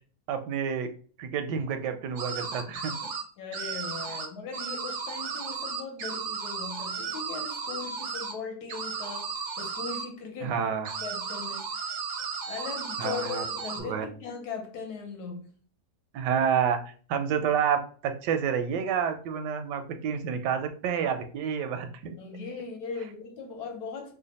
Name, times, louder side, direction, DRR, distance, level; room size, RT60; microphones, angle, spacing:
voice 1, 0.3-0.9 1.2-2.9 10.4-10.9 13.0-13.4 13.8-14.0 16.1-16.8 17.1-22.1, right 7 dB, 85° right, 1.2 m, -29 dB
sound 1, 2.2-3.2 3.5-4.3 4.5-8.3 8.7-10.1 10.8-13.8, right 5 dB, 65° right, 0.7 m, -34 dB
voice 2, 3.4-10.6 11.0-12.0 12.5-15.5 22.2-24.1, left 5 dB, 70° left, 1.3 m, -39 dB
3.1 x 2.2 x 4.0 m
omnidirectional pair, 1.8 m